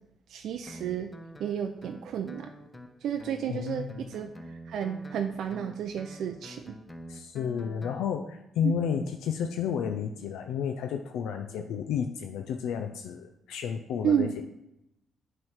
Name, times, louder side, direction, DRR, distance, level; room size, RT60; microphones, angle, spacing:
voice 1, 0.3-1.1 1.4-2.5 3.0-6.7 8.6-8.7 14.0-14.4, right 8 dB, 75° right, 5 dB, 0.4 m, -31 dB
Guitar, 0.7-8.0, equal, 15° left, 0.6 m, -47 dB
voice 2, 3.5-4.1 7.1-14.4, left 7 dB, 85° left, 5 dB, 0.4 m, -32 dB
7.6 x 3.1 x 5.6 m, 0.86 s
cardioid pair, 90°, 0 cm